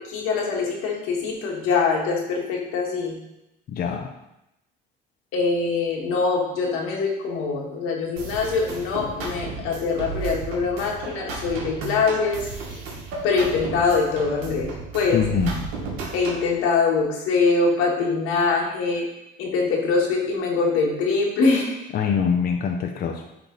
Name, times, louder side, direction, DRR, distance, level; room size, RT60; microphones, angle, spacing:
voice 1, 0.1-3.1 5.3-12.4 13.2-15.2 16.1-19.0 19.4-21.7, left 4 dB, 85° left, -1 dB, 1.7 m, -23 dB
voice 2, 3.7-4.1 15.1-15.7 21.9-23.2, left 7 dB, 45° left, 3 dB, 0.6 m, -24 dB
sound 1, 8.2-16.5, right 4 dB, 85° right, 1.7 m, -34 dB
10.0 x 3.4 x 3.9 m, 0.89 s
cardioid pair, 115°, 21 cm